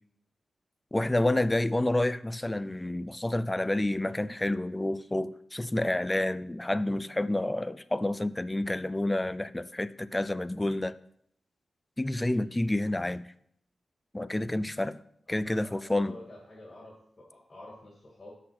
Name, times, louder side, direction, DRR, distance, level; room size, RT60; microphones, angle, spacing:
voice 1, 0.9-10.9 12.0-13.3 14.1-15.0 15.3-16.1, left 1 dB, 10° left, 0.3 m, -29 dB
voice 2, 15.4-18.3, left 1 dB, 30° left, 2.1 m, -49 dB
7.5 x 6.4 x 5.8 m
wide cardioid pair, 165°, 0 cm